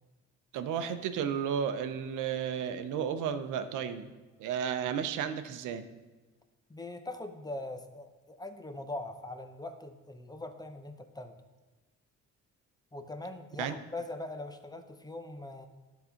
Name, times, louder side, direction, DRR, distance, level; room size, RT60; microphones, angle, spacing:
voice 1, 0.5-4.1 4.4-5.8 13.6-13.7, right 8 dB, 90° right, 10 dB, 0.7 m, -33 dB
voice 2, 6.7-11.4 12.9-15.7, left 2 dB, 15° left, 7 dB, 0.7 m, -41 dB
11.0 x 4.1 x 5.6 m, 1.2 s
cardioid pair, 90°, 30 cm